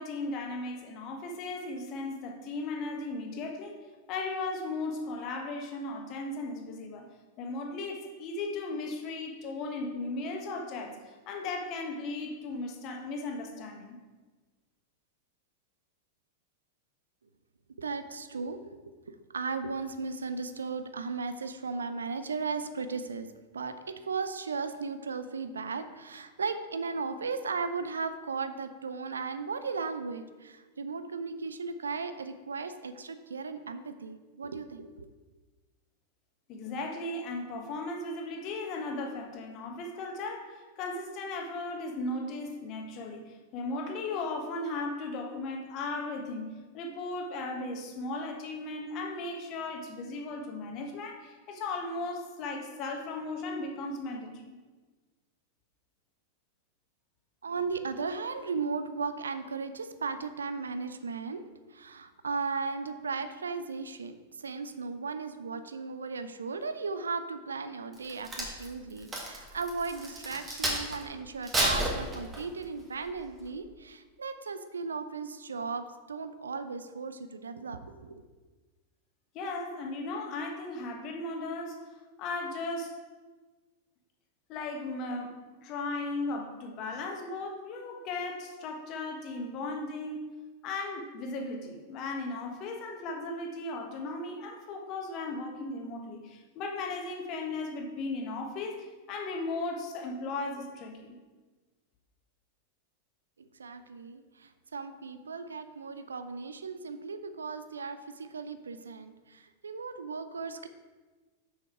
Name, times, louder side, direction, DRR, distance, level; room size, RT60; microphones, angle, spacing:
voice 1, 0.0-3.8 4.1-7.1 7.4-14.0 36.5-54.5 79.3-81.8 82.2-82.9 84.5-90.3 90.6-101.2, left 2 dB, 40° left, 2 dB, 1.2 m, -36 dB
voice 2, 17.8-18.7 19.1-35.1 57.4-61.4 61.7-78.2 103.4-110.7, right 4 dB, 70° right, 11 dB, 0.5 m, -36 dB
Crack, 67.9-71.0 71.4-72.6 73.2-73.4, right 1 dB, 20° right, 1.9 m, -31 dB
6.4 x 6.4 x 4.8 m, 1.3 s
figure-of-eight pair, 90°, 0 cm